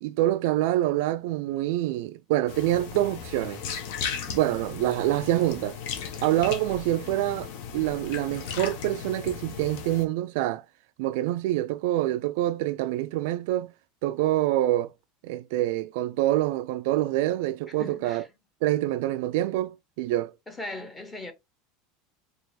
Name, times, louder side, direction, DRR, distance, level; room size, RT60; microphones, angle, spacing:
voice 1, 0.0-3.6 4.3-5.8 6.2-10.6 11.0-13.7 14.0-14.9 15.2-18.2 18.6-20.3, right 14 dB, 60° right, 0.3 m, -26 dB
sound 1, 2.5-10.0, left 7 dB, 60° left, 0.8 m, -36 dB
voice 2, 17.8-18.3 20.5-21.3, left 2 dB, 10° left, 0.8 m, -38 dB
4.6 x 2.4 x 3.3 m
supercardioid pair, 175°, 0 cm